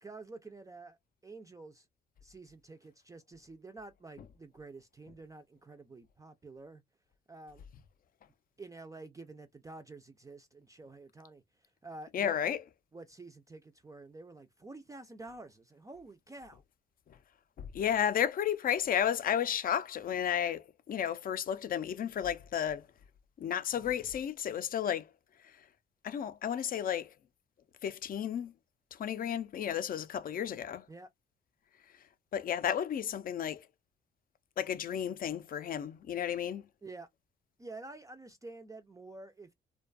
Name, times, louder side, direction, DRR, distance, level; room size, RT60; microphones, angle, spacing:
voice 1, 0.0-1.9 2.2-6.8 7.3-7.6 8.6-12.3 12.9-16.6 30.9-31.1 36.8-37.1 37.6-39.5, right 3 dB, 15° right, 0.4 m, -49 dB
voice 2, 12.1-12.6 17.6-22.8 23.4-25.1 26.0-27.1 27.8-28.5 29.0-30.8 32.3-33.6 34.6-36.6, left 9 dB, 45° left, 0.4 m, -32 dB
2.5 x 2.2 x 2.3 m
cardioid pair, 90°, 20 cm